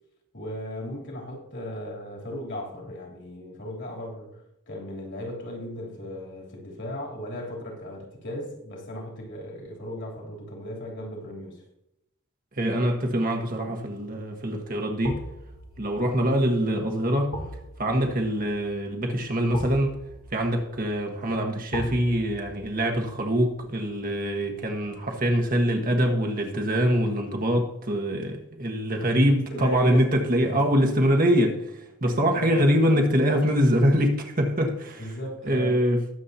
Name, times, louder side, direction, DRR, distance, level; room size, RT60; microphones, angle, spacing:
voice 1, 0.3-4.4 4.7-11.6 29.0-30.1 30.4-30.8 32.3-32.8 35.0-35.8, equal, 55° left, 3.3 m, -36 dB
voice 2, 12.6-15.2 15.8-17.3 17.8-20.0 20.3-35.1 35.4-36.0, equal, 40° right, 1.4 m, -24 dB
sound 1, 13.3-13.6 15.0-26.0 26.4-26.5, equal, 70° left, 1.9 m, -42 dB
20.5 x 7.5 x 2.8 m
head